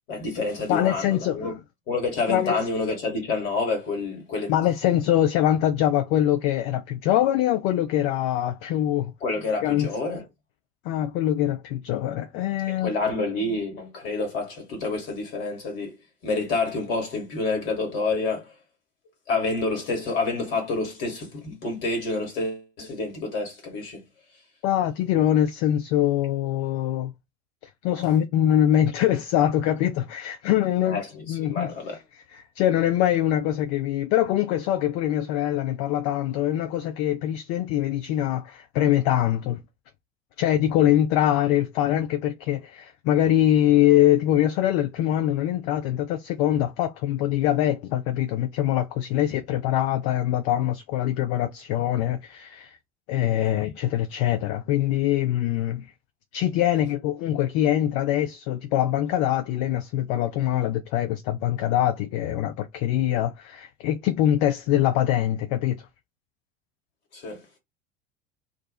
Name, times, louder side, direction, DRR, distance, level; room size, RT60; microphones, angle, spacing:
voice 1, 0.1-1.6 1.9-4.5 9.2-10.2 12.7-15.9 16.2-18.5 19.3-24.0 30.8-31.0 31.3-32.0 67.1-67.4, left 3 dB, 65° left, 1.4 m, -28 dB
voice 2, 0.7-1.5 2.3-2.6 4.5-9.1 9.6-9.9 10.8-12.9 24.6-27.1 27.8-32.0 32.3-39.6 40.4-52.8 53.1-55.9 56.3-65.9, left 12 dB, 45° left, 0.4 m, -23 dB
2.5 x 2.3 x 2.3 m
figure-of-eight pair, 75°, 31 cm